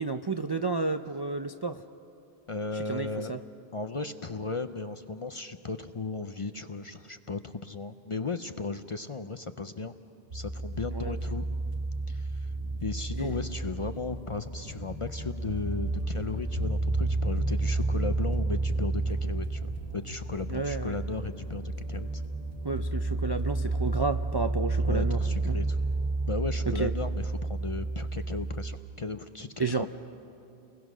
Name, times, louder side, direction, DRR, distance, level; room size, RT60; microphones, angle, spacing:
voice 1, 0.0-1.8 2.7-3.4 10.9-11.2 13.2-13.4 20.5-21.0 22.6-25.2 25.4-25.6 26.7-26.9 29.6-29.9, right 4 dB, 35° right, 8 dB, 0.4 m, -31 dB
voice 2, 2.5-3.4 3.7-9.9 10.3-11.5 12.1-12.5 12.8-22.2 24.9-25.8 26.3-29.9, left 3 dB, 40° left, 10 dB, 0.5 m, -36 dB
sound 1, 10.3-28.7, right 2 dB, 65° right, 1.8 m, -31 dB
sound 2, 12.4-27.2, right 1 dB, 20° right, 7.9 m, -45 dB
30.0 x 21.0 x 6.2 m, 2.7 s
omnidirectional pair, 1.0 m